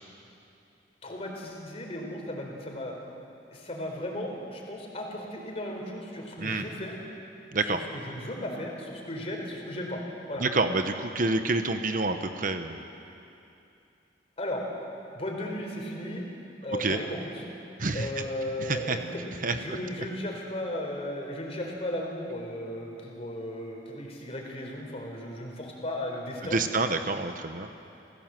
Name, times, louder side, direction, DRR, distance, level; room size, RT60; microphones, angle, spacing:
voice 1, 1.0-2.9 3.5-7.0 7.6-10.0 10.3-10.4 14.4-14.6 15.1-16.3 16.6-17.4 17.9-26.6, left 1 dB, 35° left, 0 dB, 4.1 m, -35 dB
voice 2, 10.4-12.8 16.8-17.0 17.8-18.1 18.6-19.0 19.4-19.6 26.5-27.7, right 3 dB, 50° right, 7 dB, 1.0 m, -28 dB
28.0 x 16.5 x 7.6 m, 2.7 s
head